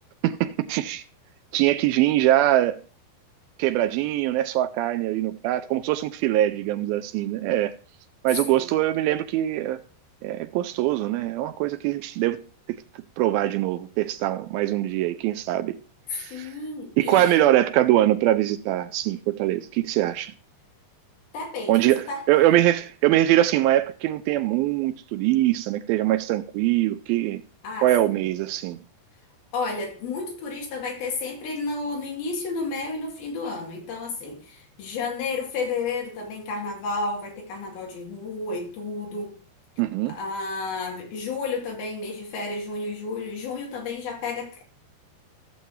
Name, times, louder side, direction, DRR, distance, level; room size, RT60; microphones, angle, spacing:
voice 1, 0.2-1.0 1.5-2.8 3.6-7.7 8.2-9.8 10.2-12.4 12.7-12.8 13.2-15.8 16.1-16.5 17.0-20.3 21.7-27.4 27.8-28.8 39.8-40.2, right 14 dB, 85° right, 2.2 m, -23 dB
voice 2, 16.3-17.5 21.3-22.2 27.6-28.2 29.5-39.3 40.1-44.6, left 3 dB, 65° left, 4.0 m, -32 dB
15.5 x 7.0 x 2.7 m
omnidirectional pair, 4.7 m